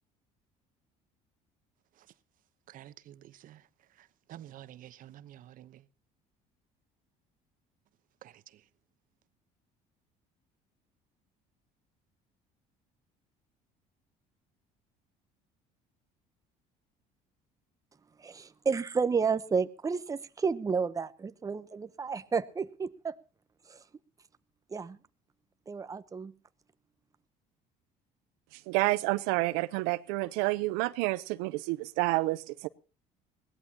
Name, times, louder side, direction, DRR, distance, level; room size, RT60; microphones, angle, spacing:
voice 1, 2.7-3.6 4.0-5.8 8.2-8.6, right 12 dB, 60° right, 1.0 m, -50 dB
voice 2, 18.2-23.2 23.7-23.8 24.7-25.0 25.7-26.3, right 5 dB, 20° right, 0.9 m, -31 dB
voice 3, 28.5-32.7, right 21 dB, 90° right, 0.7 m, -29 dB
21.5 x 17.0 x 2.9 m
cardioid pair, 105°, 16 cm